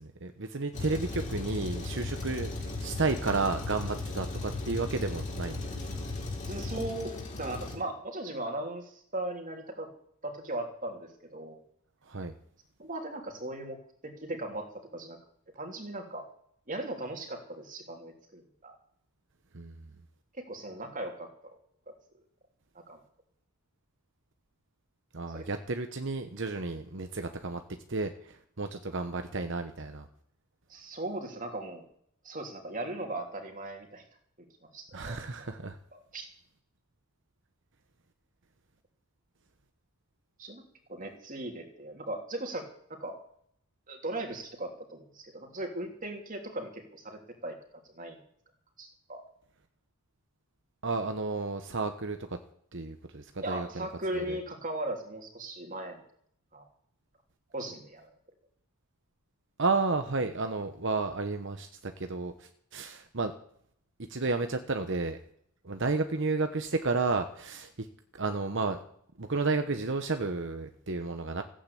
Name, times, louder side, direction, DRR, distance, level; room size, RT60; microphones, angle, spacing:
voice 1, 0.0-5.8 12.0-12.3 19.5-19.8 25.1-27.6 27.9-30.1 34.9-35.8 50.8-52.4 52.7-53.9 54.1-54.4 59.6-63.3 64.1-65.2 65.6-67.9 68.2-68.8 69.2-71.4, right 3 dB, 60° right, 7 dB, 1.1 m, -32 dB
Truck, 0.7-7.7, left 2 dB, 35° left, 3.6 m, -36 dB
voice 2, 6.5-9.9 10.2-11.6 12.8-15.2 15.5-16.2 16.7-18.7 20.4-21.5 21.9-22.0 22.9-23.0 25.3-25.4 30.7-31.8 32.2-34.0 34.7-35.5 35.9-36.3 40.4-40.6 40.9-43.2 43.9-47.6 47.9-48.2 48.8-49.2 53.4-56.0 56.5-56.6 57.5-58.1, right 1 dB, 40° right, 3 dB, 3.2 m, -38 dB
15.5 x 8.9 x 8.5 m, 0.66 s
head